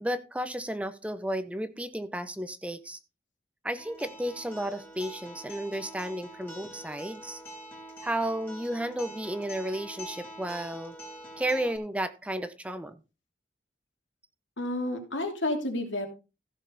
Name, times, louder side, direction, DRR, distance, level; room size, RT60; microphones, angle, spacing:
voice 1, 0.0-3.0 3.6-7.4 8.0-10.9 11.4-12.9, right 1 dB, 5° right, 12 dB, 0.7 m, -33 dB
Acoustic guitar, 3.8-11.8, equal, 10° left, 3.2 m, -45 dB
voice 2, 14.6-16.1, left 1 dB, 90° left, 3 dB, 3.2 m, -30 dB
15.5 x 6.5 x 4.0 m, 0.30 s
head